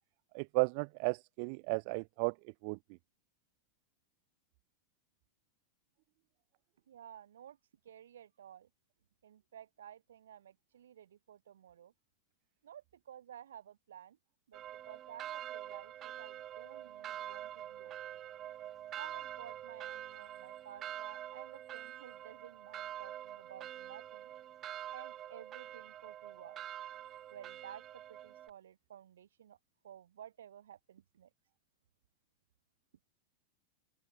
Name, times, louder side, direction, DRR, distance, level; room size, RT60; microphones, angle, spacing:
voice 1, 0.3-2.3 2.6-2.8, right 37 dB, 45° right, 0.6 m, -34 dB
voice 2, 6.9-7.6 7.8-8.7 9.2-11.9 12.6-14.2 14.5-18.2 19.0-24.3 24.9-26.6 27.3-29.6 29.8-31.3, right 10 dB, 65° right, 2.5 m, -54 dB
sound 1, 14.5-28.5, right 11 dB, 30° right, 4.6 m, -46 dB
open air
figure-of-eight pair, 90°, 0 cm